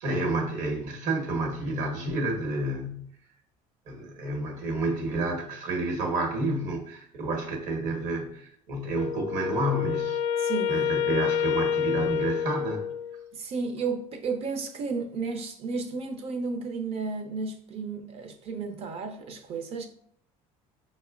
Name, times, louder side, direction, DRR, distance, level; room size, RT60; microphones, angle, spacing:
voice 1, 0.0-3.1 3.9-10.4 10.7-12.9, right 2 dB, 65° right, 1.0 m, -30 dB
Wind instrument woodwind instrument, 8.9-13.3, left 8 dB, 60° left, 0.4 m, -28 dB
voice 2, 10.4-10.9 13.3-19.9, right 4 dB, 45° right, 0.5 m, -33 dB
4.9 x 2.0 x 2.4 m
cardioid pair, 130°, 14 cm